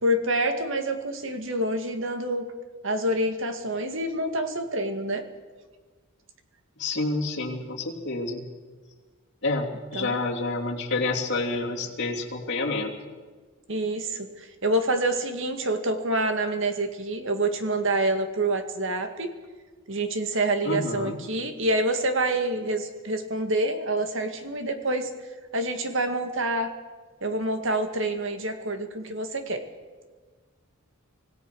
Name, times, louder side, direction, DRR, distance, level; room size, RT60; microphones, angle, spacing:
voice 1, 0.0-2.4 2.8-5.2 9.9-10.1 13.7-19.3 19.9-25.1 25.5-26.7 27.2-29.6, right 1 dB, 60° right, 7 dB, 2.1 m, -27 dB
voice 2, 6.8-8.5 9.4-12.9 20.6-21.2, left 2 dB, 55° left, -1 dB, 3.1 m, -28 dB
25.5 x 17.0 x 6.3 m, 1.4 s
head